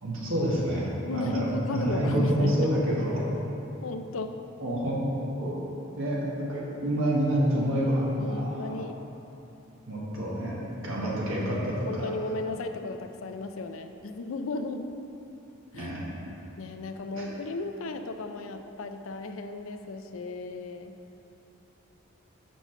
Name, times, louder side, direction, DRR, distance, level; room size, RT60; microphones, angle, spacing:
voice 1, 0.0-3.2 4.6-5.0 5.4-5.6 6.0-8.8 9.9-10.6 10.8-12.1 15.7-16.0 17.1-17.2, equal, 75° right, -5 dB, 1.7 m, -28 dB
voice 2, 1.0-2.7 3.8-4.4 8.2-9.0 11.9-15.0 15.7-15.9 16.6-21.0, left 2 dB, 80° left, 7 dB, 0.5 m, -35 dB
6.1 x 5.4 x 6.0 m, 2.9 s
head